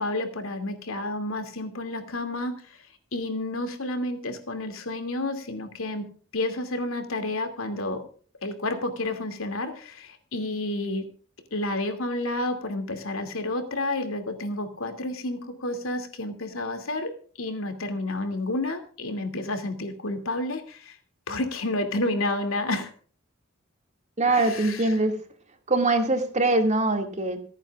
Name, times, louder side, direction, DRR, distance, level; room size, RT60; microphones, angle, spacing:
voice 1, 0.0-2.5 3.1-6.0 6.3-8.0 8.4-11.1 11.5-21.0 21.3-22.9 24.3-25.0, left 2 dB, 85° left, 7 dB, 2.6 m, -30 dB
voice 2, 24.2-25.1 25.7-27.4, right 2 dB, 35° right, 5 dB, 2.3 m, -23 dB
27.0 x 9.0 x 2.4 m, 0.43 s
head